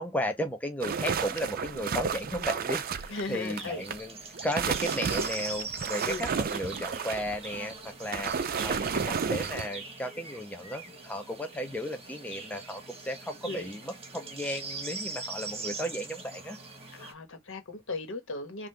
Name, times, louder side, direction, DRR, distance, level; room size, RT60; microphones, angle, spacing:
voice 1, 0.0-16.6, equal, 10° left, 0.5 m, -35 dB
sound 1, 0.8-4.0 4.4-9.7, right 6 dB, 45° right, 0.5 m, -32 dB
sound 2, 2.8-17.1, right 3 dB, 30° right, 1.4 m, -42 dB
voice 2, 3.1-3.8 6.0-6.3 13.5-13.7 16.9-18.7, left 3 dB, 60° left, 1.3 m, -37 dB
5.4 x 2.5 x 3.2 m
head